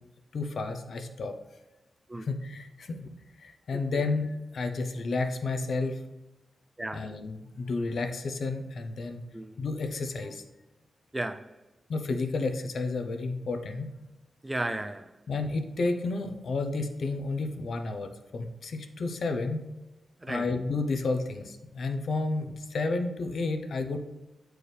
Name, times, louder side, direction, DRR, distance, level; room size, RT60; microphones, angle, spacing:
voice 1, 0.3-1.3 2.2-3.1 3.4-6.0 6.9-9.2 9.6-10.4 11.9-13.9 15.3-19.6 20.3-24.0, left 3 dB, 60° left, 0.7 m, -31 dB
voice 2, 6.8-7.1 9.3-9.6 11.1-11.6 14.4-15.1 20.2-20.5, right 1 dB, 15° right, 0.4 m, -34 dB
8.3 x 4.6 x 3.3 m
wide cardioid pair, 120°, 0 cm